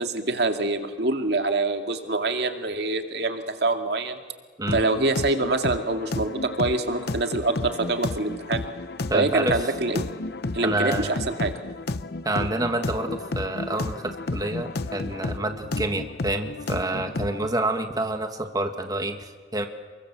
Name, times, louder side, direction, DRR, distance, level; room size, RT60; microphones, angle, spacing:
voice 1, 0.0-4.2 4.7-8.6 9.1-10.0 10.5-11.5, right 2 dB, 65° right, 5 dB, 2.2 m, -25 dB
sound 1, 4.7-17.5, left 2 dB, 65° left, 0.8 m, -32 dB
voice 2, 9.1-9.6 10.6-11.2 12.2-19.7, right 2 dB, 20° right, 6 dB, 1.6 m, -28 dB
29.0 x 22.5 x 7.6 m, 1.5 s
head